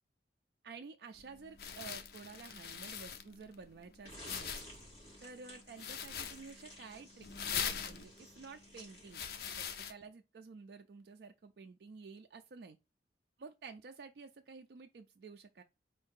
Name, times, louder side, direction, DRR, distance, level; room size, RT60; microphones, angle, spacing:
voice 1, 0.6-4.5 5.2-9.2 9.5-12.8 13.4-15.6, right 4 dB, 65° right, 0.4 m, -52 dB
sound 1, 1.2-9.9, left 7 dB, 60° left, 0.5 m, -43 dB
sound 2, 4.0-9.9, left 1 dB, 30° left, 2.4 m, -54 dB
4.4 x 2.7 x 3.7 m
head